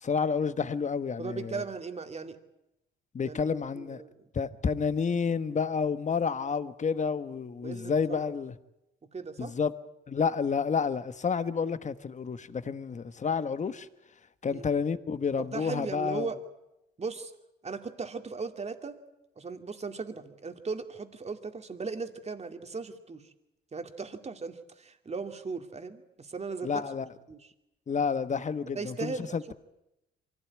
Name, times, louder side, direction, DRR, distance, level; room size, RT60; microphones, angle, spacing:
voice 1, 0.0-1.6 3.1-4.0 4.3-8.5 9.4-9.7 10.1-13.9 14.4-16.3 26.6-27.1 27.9-29.5, left 5 dB, 35° left, 1.3 m, -30 dB
voice 2, 1.2-2.4 3.2-4.3 7.6-8.3 9.1-9.6 14.5-14.7 15.4-16.4 17.0-17.3 17.6-19.0 19.4-23.2 23.7-26.8 27.3-27.5 28.7-29.5, right 4 dB, 35° right, 2.4 m, -38 dB
24.0 x 16.5 x 9.6 m
cardioid pair, 90°, 20 cm